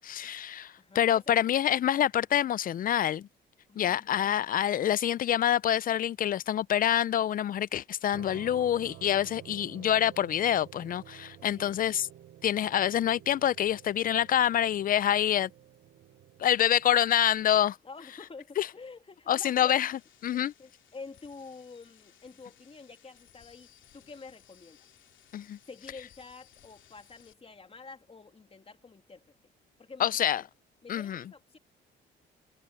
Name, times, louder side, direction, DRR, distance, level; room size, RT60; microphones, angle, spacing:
voice 1, 0.0-3.3 3.8-12.1 12.4-15.5 16.4-17.8 18.6-18.7 19.3-20.5 25.3-25.6 30.0-30.4 30.9-31.2, left 10 dB, 45° left, 0.4 m, -26 dB
voice 2, 3.7-4.0 11.5-11.7 17.8-19.8 20.3-24.8 25.7-29.2 29.8-30.4 30.8-31.6, left 4 dB, 30° left, 2.9 m, -48 dB
sound 1, 8.1-17.6, right 13 dB, 70° right, 0.9 m, -51 dB
sound 2, 19.9-27.3, left 11 dB, 75° left, 2.8 m, -61 dB
cardioid pair, 90°, 20 cm